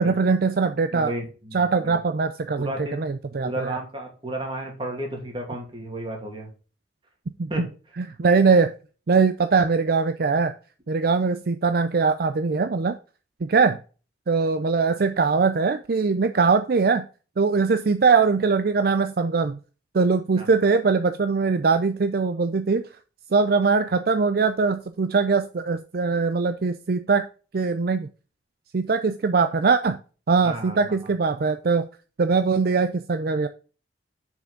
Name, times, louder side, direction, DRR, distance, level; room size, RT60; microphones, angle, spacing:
voice 1, 0.0-1.1 1.5-3.8 7.4-7.7 8.0-8.7 9.1-10.5 10.9-13.0 13.4-13.8 14.3-17.0 17.4-19.6 19.9-22.8 23.3-27.3 27.5-28.1 28.7-30.0 30.3-31.9 32.2-33.5, right 4 dB, 55° right, 10 dB, 0.5 m, -21 dB
voice 2, 0.9-2.0 2.6-3.0 3.4-6.5 7.5-7.6 20.4-20.5 30.4-31.0, right 1 dB, 30° right, 1 dB, 2.6 m, -33 dB
6.9 x 6.2 x 3.8 m, 0.36 s
head